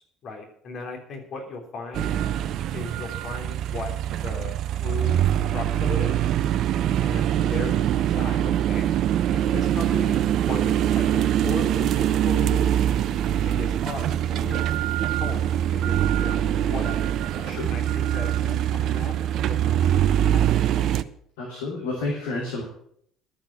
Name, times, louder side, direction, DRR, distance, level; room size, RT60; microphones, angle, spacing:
voice 1, 0.2-2.1 2.7-5.2 5.5-6.2 7.0-8.8 9.3-14.6 15.2-16.9 17.3-19.2 19.5-20.6, left 3 dB, 50° left, 1 dB, 3.2 m, -37 dB
sound 1, 1.9-21.0, right 11 dB, 55° right, 0.5 m, -23 dB
voice 2, 21.4-22.6, left 2 dB, 75° left, -3 dB, 2.9 m, -30 dB
12.0 x 7.4 x 7.3 m, 0.66 s
figure-of-eight pair, 55°, 0 cm